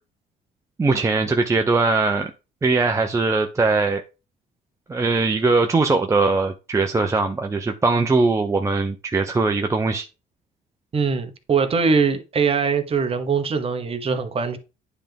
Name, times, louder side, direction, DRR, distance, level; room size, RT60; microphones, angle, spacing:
voice 1, 0.8-2.3 2.6-4.0 4.9-10.1, right 3 dB, 15° right, 0.6 m, -20 dB
voice 2, 10.9-14.6, right 5 dB, 35° right, 1.2 m, -22 dB
9.9 x 3.5 x 3.5 m
cardioid pair, 110°, 17 cm